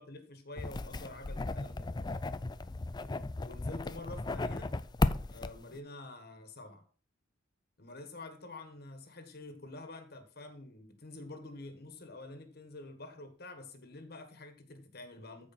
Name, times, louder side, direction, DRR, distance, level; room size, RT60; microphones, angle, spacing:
voice 1, 0.0-1.9 3.4-4.7 5.3-6.8 7.8-15.5, left 2 dB, 50° left, 1.5 m, -48 dB
sound 1, 0.6-5.8, left 2 dB, 20° left, 0.4 m, -35 dB
14.5 x 4.8 x 4.3 m
head